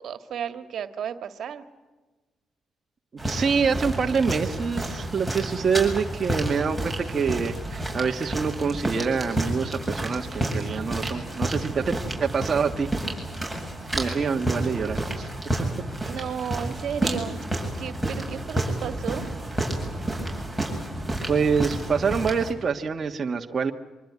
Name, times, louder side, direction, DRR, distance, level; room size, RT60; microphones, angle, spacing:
voice 1, 0.0-1.6 16.0-17.5 17.8-19.3, right 8 dB, 65° right, 10 dB, 1.9 m, -33 dB
sound 1, 3.2-22.5, right 1 dB, ahead, 7.9 m, -30 dB
voice 2, 3.2-12.9 13.9-15.3 21.3-23.7, right 5 dB, 40° right, 3 dB, 1.5 m, -26 dB
25.5 x 23.5 x 9.6 m, 1.2 s
cardioid pair, 90°, 0 cm